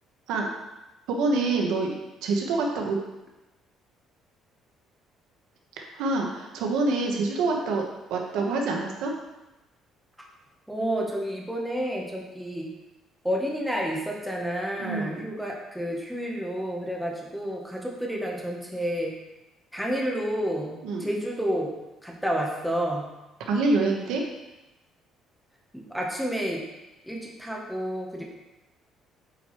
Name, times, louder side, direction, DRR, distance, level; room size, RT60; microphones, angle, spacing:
voice 1, 1.1-1.9 2.2-3.0 5.8-9.1 14.8-15.2 20.8-21.1 23.5-24.2, right 3 dB, 90° right, 1 dB, 1.1 m, -26 dB
voice 2, 10.7-12.7 13.2-19.1 19.7-21.7 22.0-23.1 25.7-26.6 27.0-28.2, equal, ahead, -2 dB, 0.9 m, -30 dB
8.2 x 4.4 x 3.1 m, 1.0 s
cardioid pair, 165°, 0 cm